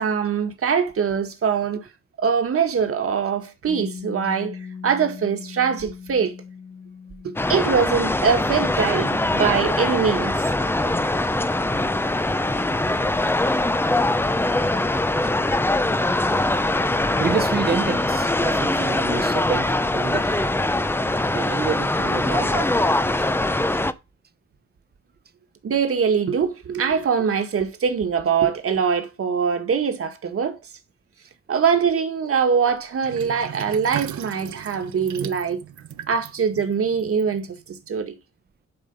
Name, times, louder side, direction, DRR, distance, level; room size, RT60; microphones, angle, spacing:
voice 1, 0.0-1.9 2.2-4.6 4.8-6.3 7.2-10.7 11.1-11.2 25.6-30.6 31.5-35.6 36.1-38.1, right 6 dB, 50° right, 1.7 m, -23 dB
Piano, 3.7-11.0, left 6 dB, 60° left, 2.5 m, -41 dB
sound 1, 7.4-23.9, left 2 dB, 10° left, 0.5 m, -22 dB
voice 2, 17.2-20.5 21.3-23.2 23.7-23.8, right 6 dB, 35° right, 0.9 m, -29 dB
Sink (filling or washing), 33.0-37.8, right 10 dB, 75° right, 0.9 m, -37 dB
11.0 x 5.3 x 5.4 m
wide cardioid pair, 170°, 29 cm